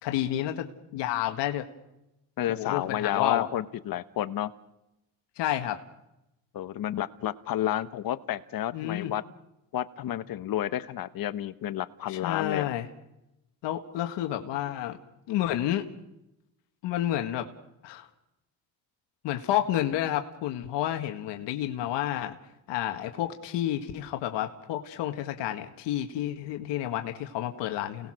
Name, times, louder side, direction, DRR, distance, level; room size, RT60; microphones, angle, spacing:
voice 1, 0.0-1.7 2.5-3.5 5.4-5.8 8.7-9.1 12.1-12.9 13.6-15.0 15.3-15.9 16.8-17.5 17.8-18.1 19.2-22.4 22.7-28.1, left 12 dB, 80° left, 6 dB, 1.8 m, -30 dB
voice 2, 2.4-4.5 6.5-9.2 9.7-12.7, left 12 dB, 55° left, 14 dB, 1.1 m, -31 dB
30.0 x 19.5 x 6.4 m, 0.91 s
cardioid pair, 115°, 42 cm